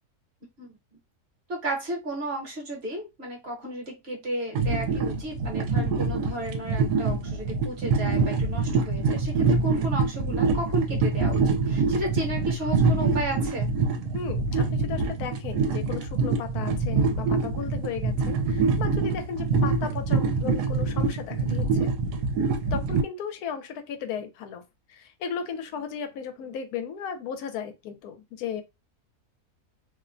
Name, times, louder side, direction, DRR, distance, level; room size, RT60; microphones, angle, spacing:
voice 1, 1.5-13.7, right 1 dB, 50° right, 1.0 m, -33 dB
sound 1, 4.5-23.0, right 4 dB, 80° right, 1.1 m, -25 dB
voice 2, 14.1-21.9 22.7-24.6 24.9-28.6, left 7 dB, 75° left, 1.1 m, -35 dB
2.8 x 2.1 x 2.4 m
omnidirectional pair, 1.7 m